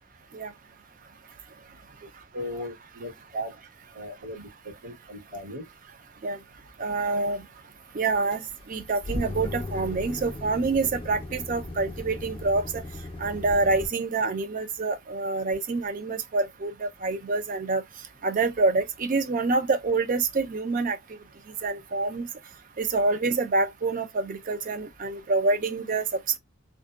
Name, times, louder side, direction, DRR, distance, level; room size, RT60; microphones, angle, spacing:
voice 1, 2.3-3.5 3.9-4.5 4.8-5.6, equal, 80° right, 1.3 m, -36 dB
voice 2, 6.8-7.4 7.9-12.8 13.2-17.8 18.2-21.2 21.6-22.3 22.8-26.4, right 3 dB, 40° right, 0.4 m, -27 dB
sound 1, 8.3-13.9, left 2 dB, 25° left, 0.4 m, -36 dB
2.6 x 2.2 x 2.3 m
head